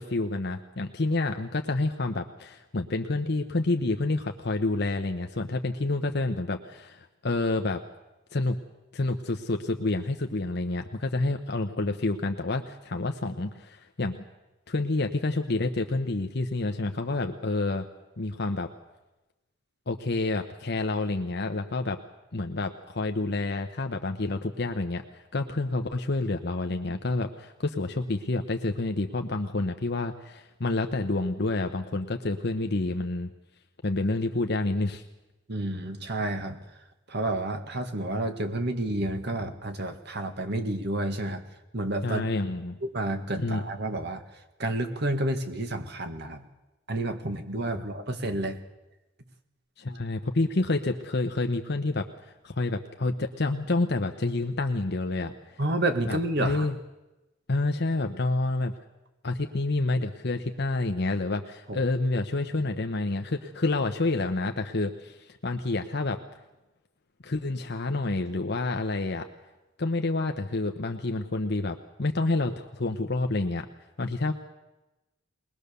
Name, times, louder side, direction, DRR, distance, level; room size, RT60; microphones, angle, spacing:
voice 1, 0.0-7.8 8.3-8.6 8.9-14.2 14.7-17.9 18.2-18.7 19.9-22.0 22.3-33.3 33.8-35.0 42.0-42.8 43.4-43.6 47.7-47.8 49.8-55.6 56.1-56.7 57.5-58.7 59.2-66.2 67.2-69.3 69.8-73.7 74.0-74.3, left 2 dB, 60° left, 5 dB, 1.0 m, -28 dB
voice 2, 35.5-36.6 37.1-41.4 41.7-42.3 42.8-44.2 44.6-46.4 46.9-48.6 55.6-56.7 61.7-61.8, right 1 dB, 60° right, 7 dB, 2.0 m, -30 dB
21.5 x 20.5 x 6.9 m, 1.0 s
head